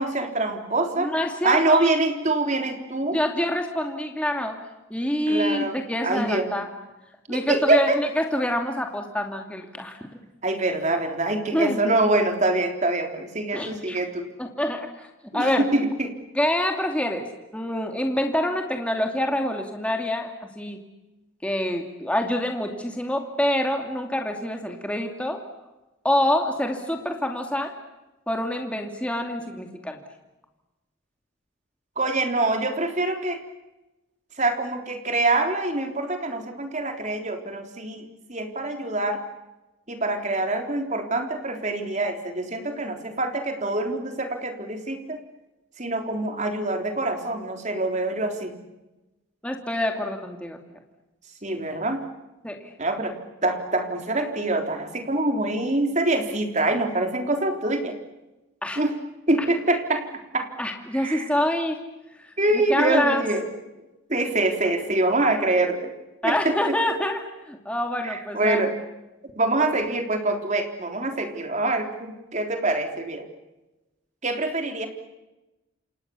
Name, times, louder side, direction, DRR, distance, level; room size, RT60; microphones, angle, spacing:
voice 1, 0.0-1.1 1.4-3.2 5.3-5.7 6.0-6.5 7.3-8.0 10.4-14.3 15.3-15.5 15.7-16.1 32.0-33.4 34.4-39.2 39.9-45.2 45.8-48.6 51.4-52.0 52.8-53.2 53.4-58.0 58.8-59.0 59.3-60.1 60.3-60.5 60.9-61.3 62.4-63.4 64.1-65.9 66.2-66.7 68.0-68.7 69.4-73.2 74.2-74.9, right 2 dB, 35° right, 5 dB, 3.6 m, -25 dB
voice 2, 1.0-1.9 3.1-4.6 4.9-6.7 7.3-10.1 11.5-11.8 13.5-14.0 14.4-15.1 15.3-15.7 16.3-17.3 17.5-20.3 20.6-20.8 21.4-25.4 26.0-27.7 28.3-30.0 49.4-50.6 52.4-52.7 58.6-58.8 60.6-61.8 62.5-63.2 66.2-68.6, left 1 dB, 5° left, 3 dB, 2.6 m, -26 dB
29.0 x 27.0 x 7.1 m, 1.0 s
head